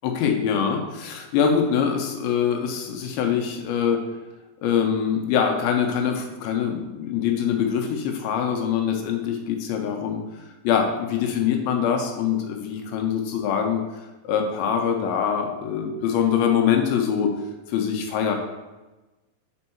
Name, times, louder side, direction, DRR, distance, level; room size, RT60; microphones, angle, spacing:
voice 1, 0.0-4.0 4.6-10.2 10.6-13.9 14.2-17.3 17.7-18.4, left 7 dB, 80° left, 3 dB, 2.3 m, -24 dB
5.3 x 4.4 x 4.3 m, 1.1 s
omnidirectional pair, 4.6 m